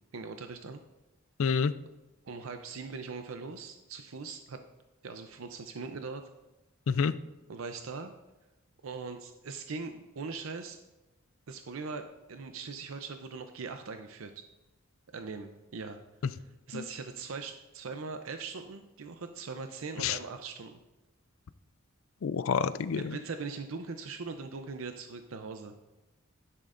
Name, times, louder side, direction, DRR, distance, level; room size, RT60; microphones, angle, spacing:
voice 1, 0.1-0.8 2.2-4.6 5.0-6.2 7.5-8.1 8.8-10.8 11.5-14.4 15.1-16.0 16.3-20.8 22.9-25.7, right 4 dB, 80° right, 7 dB, 0.6 m, -41 dB
voice 2, 1.4-1.7 6.9-7.1 16.7-16.8 20.0-20.2 22.2-23.2, left 6 dB, 75° left, 15 dB, 0.4 m, -28 dB
12.0 x 9.9 x 2.5 m, 1.0 s
head